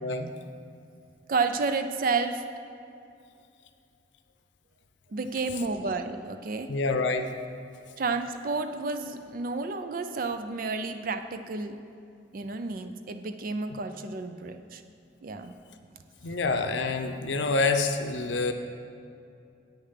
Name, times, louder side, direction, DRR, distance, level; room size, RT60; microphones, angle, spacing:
voice 1, 1.3-2.5 5.1-6.7 8.0-11.8 12.3-14.8 15.2-15.5, right 4 dB, 50° right, 8 dB, 0.4 m, -31 dB
voice 2, 6.7-7.3 13.7-13.8 16.2-18.5, left 3 dB, 80° left, 7 dB, 0.6 m, -27 dB
8.6 x 6.7 x 5.7 m, 2.6 s
head